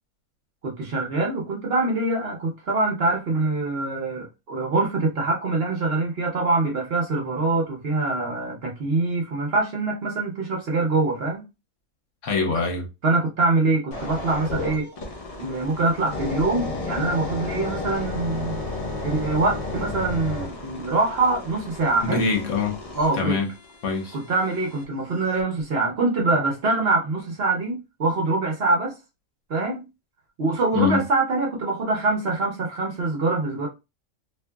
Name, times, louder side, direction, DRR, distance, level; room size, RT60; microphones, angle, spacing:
voice 1, 0.6-11.4 13.0-14.9 15.4-18.6 19.0-22.2 22.9-23.4 24.1-29.0 29.5-29.8 30.4-33.7, right 3 dB, 55° right, 0.8 m, -24 dB
voice 2, 12.2-12.9 22.0-22.8 23.2-23.5 23.8-24.2 30.7-31.0, left 5 dB, 65° left, 1.0 m, -24 dB
sound 1, 13.9-24.8 25.4-25.6, left 2 dB, 45° left, 0.4 m, -33 dB
2.7 x 2.5 x 2.2 m
omnidirectional pair, 1.5 m